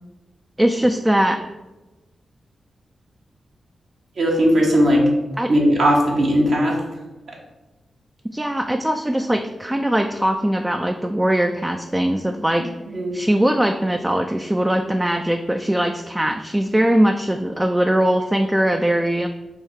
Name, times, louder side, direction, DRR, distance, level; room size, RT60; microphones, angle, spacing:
voice 1, 0.6-1.5 5.4-5.5 8.3-12.7 13.1-19.3, right 1 dB, 15° right, 5 dB, 0.3 m, -20 dB
voice 2, 4.2-5.0 5.5-6.8 12.9-13.2, equal, 70° right, -3 dB, 1.3 m, -17 dB
3.7 x 2.6 x 4.6 m, 1.1 s
supercardioid pair, 45°, 0 cm